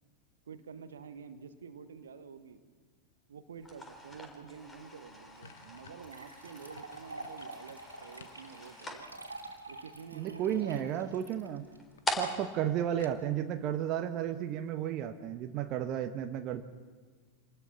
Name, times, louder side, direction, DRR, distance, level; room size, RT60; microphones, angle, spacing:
voice 1, 0.5-2.6 3.3-9.0 9.7-11.2 12.1-12.5, right 6 dB, 65° right, 10 dB, 1.4 m, -49 dB
sound 1, 3.6-14.0, equal, 15° left, 4.0 m, -44 dB
sound 2, 5.2-8.4 8.8-9.7 10.8-11.2 11.6-11.7 12.0-12.1 12.4-12.5 13.0-13.6, left 6 dB, 65° left, 1.3 m, -56 dB
sound 3, 5.3-5.4 6.0-12.3, right 2 dB, 80° right, 2.8 m, -48 dB
voice 2, 10.1-11.7 12.2-16.6, right 10 dB, 35° right, 8 dB, 1.2 m, -33 dB
26.5 x 19.5 x 5.8 m, 1.5 s
figure-of-eight pair, 90°, 0 cm